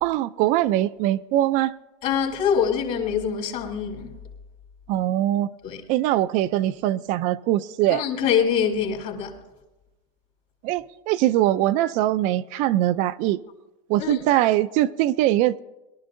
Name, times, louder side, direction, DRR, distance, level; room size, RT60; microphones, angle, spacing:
voice 1, 0.0-1.7 4.9-5.5 5.9-8.0 10.6-13.4 13.9-15.6, right 14 dB, 45° right, 0.4 m, -22 dB
voice 2, 2.0-4.1 5.6-5.8 7.9-9.4 14.0-14.3, left 7 dB, 50° left, 2.9 m, -24 dB
22.0 x 12.5 x 2.6 m
supercardioid pair, 145°, 18 cm